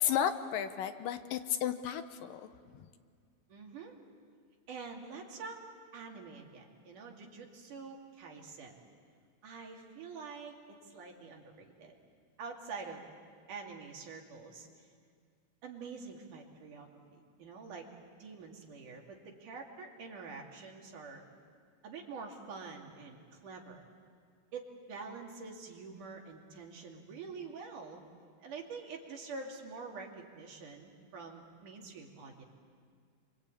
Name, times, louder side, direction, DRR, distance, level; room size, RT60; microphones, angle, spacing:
voice 1, 0.0-2.5, left 9 dB, 75° left, 9 dB, 2.5 m, -33 dB
voice 2, 3.5-4.0 4.7-5.6 5.9-8.8 9.4-12.0 12.4-13.1 13.5-14.9 15.6-17.9 18.2-21.2 21.8-23.8 24.5-28.0 28.4-32.4, right 4 dB, 65° right, 1 dB, 3.9 m, -46 dB
28.5 x 24.0 x 8.7 m, 2.1 s
omnidirectional pair, 4.1 m